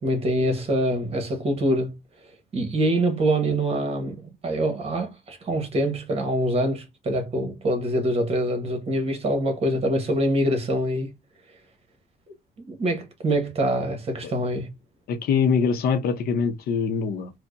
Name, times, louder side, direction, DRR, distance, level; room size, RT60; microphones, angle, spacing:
voice 1, 0.0-2.0 2.5-11.1 12.7-14.7, right 1 dB, 35° right, 1.2 m, -25 dB
voice 2, 15.1-17.3, left 6 dB, 65° left, 0.7 m, -23 dB
4.4 x 2.2 x 2.6 m
cardioid pair, 110°, 17 cm